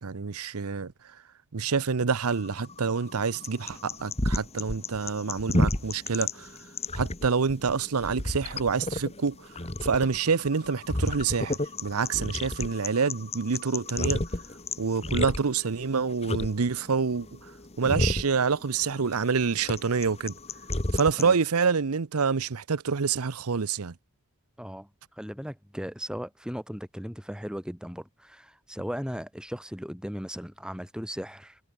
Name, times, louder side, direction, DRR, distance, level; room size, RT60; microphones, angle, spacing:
voice 1, 0.0-0.9 1.5-6.5 6.9-9.4 9.8-14.2 14.8-17.3 17.8-20.3 20.9-23.9, right 5 dB, 80° right, 0.7 m, -27 dB
sound 1, 2.3-21.4, left 2 dB, 30° left, 1.9 m, -32 dB
voice 2, 24.6-31.6, equal, 5° right, 7.9 m, -37 dB
head